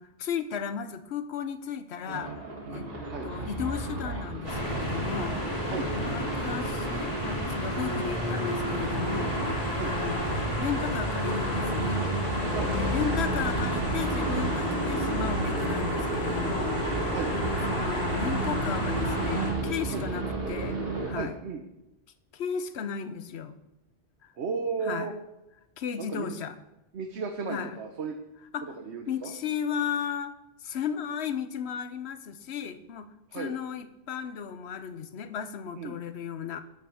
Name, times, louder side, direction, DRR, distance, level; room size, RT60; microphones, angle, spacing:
voice 1, 0.0-2.4 2.7-2.9 3.2-5.7 6.0-12.0 12.8-20.8 21.0-21.4 22.3-23.5 24.2-24.3 24.8-25.2 25.8-26.5 27.5-27.8 28.5-28.8 29.1-30.3 30.6-36.6, left 7 dB, 80° left, 11 dB, 1.0 m, -35 dB
sound 1, 2.0-21.2, right 2 dB, 65° right, 2.2 m, -34 dB
sound 2, 4.5-19.5, equal, 30° right, 2.9 m, -30 dB
voice 2, 21.1-21.6 24.4-25.1 26.0-26.4 26.9-28.2 28.6-29.3 33.3-33.5 35.8-36.0, right 5 dB, 85° right, 4 dB, 1.2 m, -34 dB
10.5 x 7.9 x 6.4 m, 0.94 s
omnidirectional pair, 1.1 m